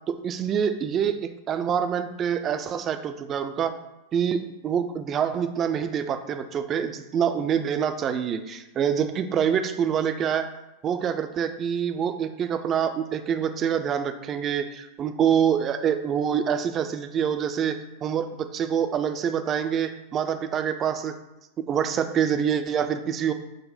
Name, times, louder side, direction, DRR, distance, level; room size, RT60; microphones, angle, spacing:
voice 1, 0.1-3.7 4.1-10.5 10.8-21.1 21.6-23.3, right 8 dB, 30° right, 8 dB, 0.3 m, -26 dB
5.0 x 2.1 x 4.2 m, 0.93 s
figure-of-eight pair, 90°, 0 cm